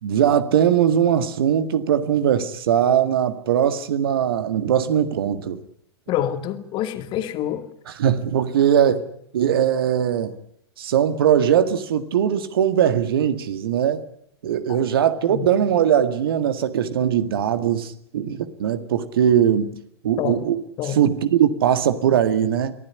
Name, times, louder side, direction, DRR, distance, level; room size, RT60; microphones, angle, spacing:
voice 1, 0.0-5.6 7.9-9.1 9.3-10.4 10.8-14.0 14.4-19.7 20.0-22.7, right 9 dB, 60° right, 1.9 m, -20 dB
voice 2, 6.1-7.7 14.7-14.8 15.3-15.5 20.2-20.4 20.8-21.0, left 11 dB, 35° left, 2.4 m, -26 dB
24.0 x 15.5 x 9.6 m
figure-of-eight pair, 95°, 13 cm